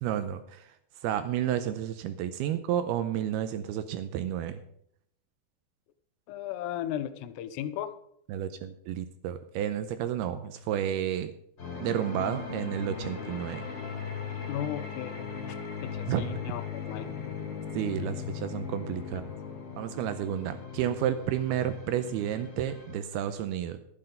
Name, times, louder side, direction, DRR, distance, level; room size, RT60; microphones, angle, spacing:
voice 1, 0.0-0.7 1.0-4.6 8.3-11.3 11.8-13.7 16.1-16.4 17.7-19.3 19.8-23.8, right 10 dB, 80° right, 11 dB, 2.4 m, -31 dB
voice 2, 6.3-7.9 12.2-12.3 14.5-17.1, left 11 dB, 85° left, 11 dB, 2.8 m, -36 dB
sound 1, 11.6-23.0, left 6 dB, 40° left, 1.9 m, -38 dB
12.0 x 9.8 x 5.3 m, 0.71 s
omnidirectional pair, 5.0 m